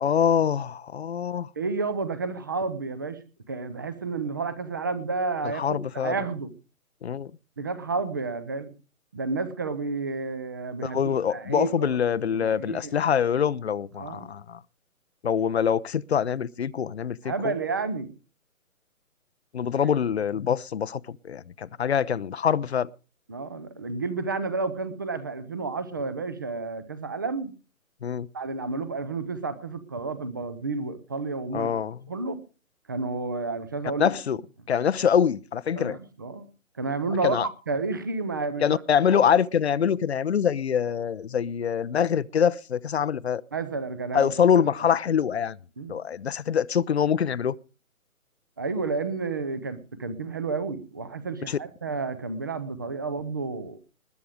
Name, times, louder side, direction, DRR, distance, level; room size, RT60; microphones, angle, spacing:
voice 1, 0.0-1.5 5.5-6.1 7.0-7.3 10.8-14.6 15.2-17.5 19.5-22.9 28.0-28.3 31.5-32.0 34.0-34.4 34.7-36.0 37.2-37.5 38.6-43.4 44.1-45.6 45.9-47.6 51.5-51.6, left 8 dB, 50° left, 0.6 m, -24 dB
voice 2, 1.6-6.5 7.6-8.7 9.1-11.9 12.3-12.9 14.0-14.3 17.2-18.1 19.9-20.0 23.3-27.5 28.3-32.4 32.9-34.1 35.8-36.5 36.8-38.6 39.1-39.2 43.5-44.3 45.8-46.0 48.6-53.8, right 4 dB, 15° right, 0.6 m, -31 dB
20.5 x 7.6 x 4.9 m
figure-of-eight pair, 145°, 42 cm